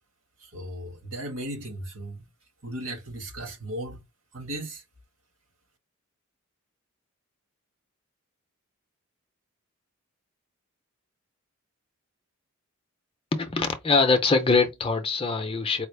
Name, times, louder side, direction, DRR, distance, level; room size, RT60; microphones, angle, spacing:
voice 1, 0.4-2.2 2.6-4.0 4.3-4.8, right 1 dB, 65° right, 1.7 m, -36 dB
voice 2, 13.3-15.9, left 4 dB, 25° left, 0.6 m, -23 dB
4.9 x 2.0 x 3.3 m
head